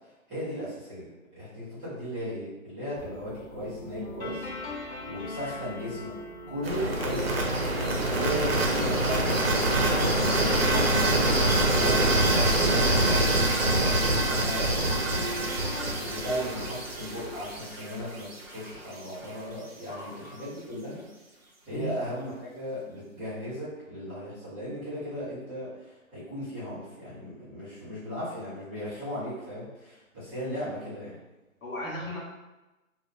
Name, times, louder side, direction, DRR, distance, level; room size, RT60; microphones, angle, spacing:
voice 1, 0.3-4.7 5.0-6.1 6.5-7.5 8.1-11.1 11.6-15.5 16.0-21.0 21.7-31.2, equal, ahead, -15 dB, 0.8 m, -37 dB
sound 1, 3.0-17.6, left 1 dB, 55° left, 0.5 m, -41 dB
sound 2, 6.6-18.6, right 1 dB, 50° right, 0.5 m, -25 dB
voice 2, 19.9-20.4 21.7-22.0 31.6-32.2, equal, 70° left, -5 dB, 0.9 m, -36 dB
2.2 x 2.1 x 2.9 m, 1.1 s
hypercardioid pair, 165°, 41 cm